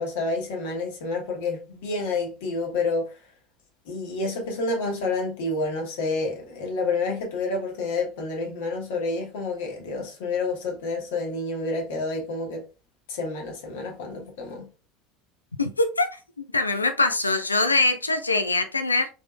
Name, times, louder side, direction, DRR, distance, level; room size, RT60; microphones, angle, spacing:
voice 1, 0.0-3.1 3.9-12.6 13.1-14.7, left 3 dB, 65° left, 1.2 m, -29 dB
voice 2, 15.6-16.1 16.5-19.1, left 2 dB, 85° left, 0.3 m, -23 dB
3.5 x 3.4 x 2.4 m
figure-of-eight pair, 70°, 0 cm